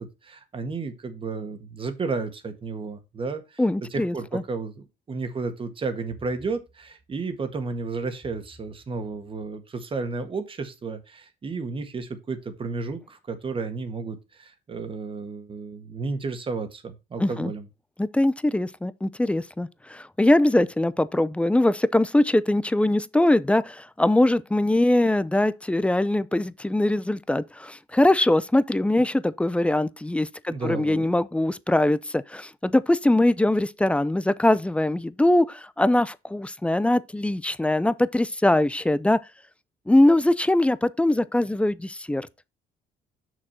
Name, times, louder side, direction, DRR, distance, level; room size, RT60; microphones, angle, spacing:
voice 1, 0.0-3.6 3.9-17.7 30.5-31.1, right 4 dB, 30° right, 1.7 m, -32 dB
voice 2, 3.6-4.4 17.2-17.5 18.0-39.2 39.9-42.3, left 1 dB, 5° left, 0.5 m, -22 dB
6.6 x 6.3 x 4.2 m
cardioid pair, 110°, 17 cm